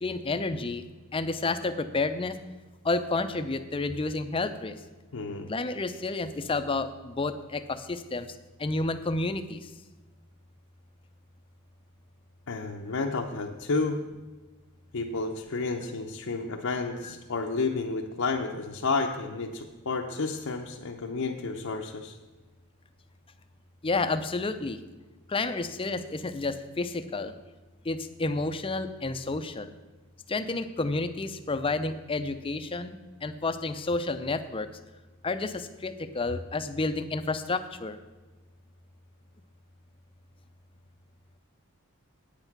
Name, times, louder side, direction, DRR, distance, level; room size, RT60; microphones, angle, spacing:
voice 1, 0.0-2.4 2.8-4.8 5.5-9.7 17.0-17.1 23.8-24.8 25.3-27.3 27.8-29.7 30.3-34.7 35.2-38.0, left 3 dB, 25° left, 10 dB, 0.5 m, -30 dB
voice 2, 5.1-5.5 12.5-14.0 14.9-22.2, left 3 dB, 65° left, 0 dB, 0.7 m, -31 dB
8.7 x 7.9 x 5.9 m, 1.2 s
head